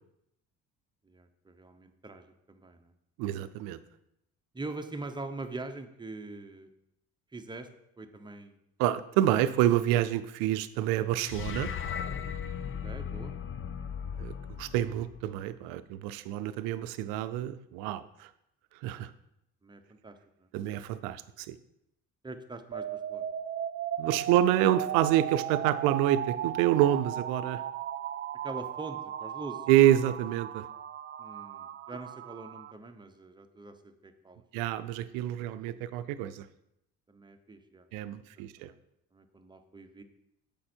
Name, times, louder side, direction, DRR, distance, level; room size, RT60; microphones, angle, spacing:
voice 1, 1.0-2.9 4.5-6.7 7.3-7.7 8.0-8.6 12.6-13.3 19.6-20.5 22.2-23.3 28.4-29.7 31.2-34.4 37.1-38.8 39.1-40.0, right 2 dB, 15° right, 6 dB, 0.8 m, -43 dB
voice 2, 3.2-3.8 8.8-11.7 14.2-18.3 18.8-19.1 20.5-21.6 24.0-27.6 29.7-30.6 34.5-36.4 37.9-38.7, right 12 dB, 90° right, 13 dB, 0.5 m, -27 dB
sound 1, 11.2-15.6, left 7 dB, 40° left, 0.6 m, -37 dB
sound 2, 22.7-32.7, right 10 dB, 35° right, 0.4 m, -36 dB
7.5 x 5.2 x 4.4 m, 0.81 s
supercardioid pair, 80°, 33 cm